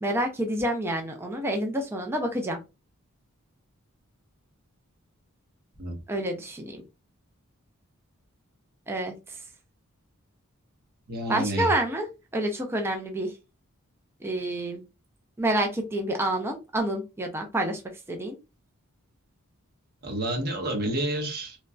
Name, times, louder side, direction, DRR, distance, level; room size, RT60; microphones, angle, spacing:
voice 1, 0.0-2.6 6.1-6.8 8.9-9.2 11.3-12.1 12.3-13.3 14.2-14.8 15.4-17.8 18.1-18.4, right 1 dB, 10° right, 3 dB, 0.4 m, -28 dB
voice 2, 11.1-11.7 20.0-21.6, right 1 dB, 45° right, 1 dB, 1.1 m, -29 dB
3.0 x 2.5 x 2.2 m, 0.27 s
head